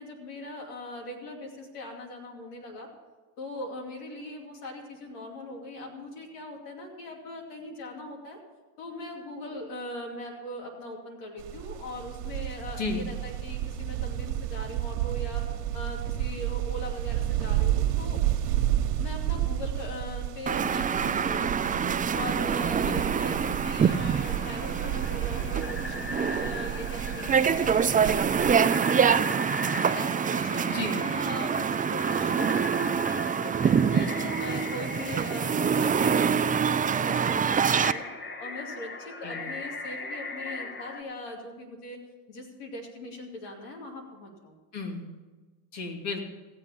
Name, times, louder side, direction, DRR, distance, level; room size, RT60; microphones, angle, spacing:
voice 1, 0.0-2.9 3.4-8.4 8.8-15.4 15.7-18.2 19.0-21.8 22.1-29.4 29.8-34.1 34.4-38.1 38.4-42.0 42.3-44.6, left 1 dB, 80° left, 1 dB, 2.7 m, -40 dB
sound 1, 11.4-28.5, right 12 dB, 75° right, 1.2 m, -31 dB
sound 2, 20.5-37.9, right 7 dB, 20° right, 0.4 m, -26 dB
sound 3, 22.9-41.0, left 3 dB, 25° left, 1.3 m, -39 dB
voice 2, 30.7-31.0 33.9-34.3 39.2-39.5 44.7-45.1 45.7-46.2, left 3 dB, 60° left, 1 dB, 2.5 m, -34 dB
16.0 x 7.9 x 5.7 m, 1.3 s
hypercardioid pair, 65°, 46 cm